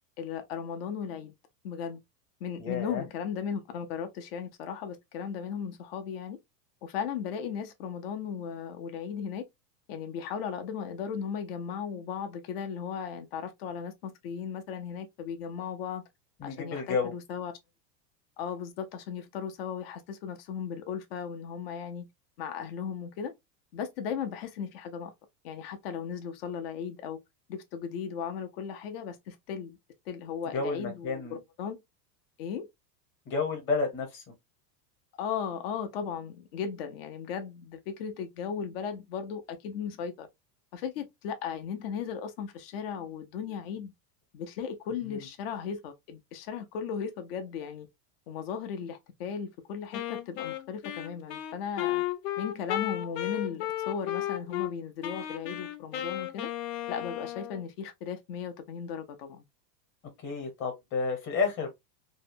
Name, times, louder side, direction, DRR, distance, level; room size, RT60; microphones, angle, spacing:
voice 1, 0.2-1.3 1.6-2.0 2.4-6.4 6.8-9.4 9.9-16.0 16.4-17.5 18.4-22.1 22.4-23.3 23.7-25.1 25.4-27.2 27.5-29.8 30.1-31.2 31.6-31.8 32.4-32.7 35.2-40.3 40.7-43.9 44.3-47.9 48.3-52.0 52.4-56.5 56.9-59.4, left 7 dB, 40° left, 0.4 m, -36 dB
voice 2, 2.6-3.0 16.4-17.1 30.5-31.4 33.3-34.2 45.1-45.3 60.2-61.7, left 4 dB, 25° left, 0.9 m, -31 dB
Wind instrument woodwind instrument, 49.9-54.7 55.0-57.6, left 13 dB, 75° left, 0.7 m, -34 dB
2.7 x 2.1 x 2.5 m
supercardioid pair, 165°, 50 cm